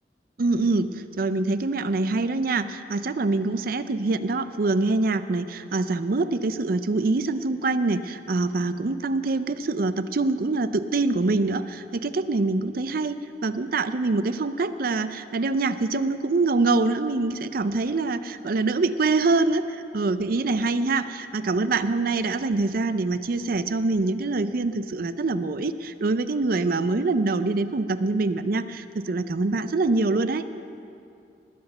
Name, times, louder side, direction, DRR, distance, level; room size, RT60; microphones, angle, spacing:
voice 1, 0.4-30.4, right 3 dB, 55° right, 12 dB, 0.5 m, -25 dB
19.0 x 8.0 x 5.5 m, 2.6 s
head